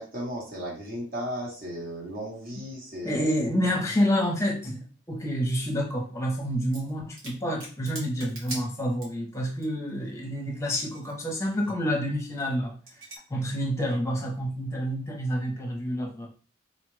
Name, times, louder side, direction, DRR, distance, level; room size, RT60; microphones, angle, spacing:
voice 1, 0.0-3.3, equal, 45° right, -4 dB, 1.1 m, -35 dB
voice 2, 3.0-12.8 13.3-16.3, equal, 15° left, -1 dB, 0.8 m, -28 dB
sound 1, 6.6-6.9 7.2-9.3 9.6-9.7 9.9-11.1 11.4-11.7 12.3-12.5 12.9-13.2, right 2 dB, 85° right, 1.6 m, -41 dB
3.9 x 2.4 x 3.1 m, 0.38 s
head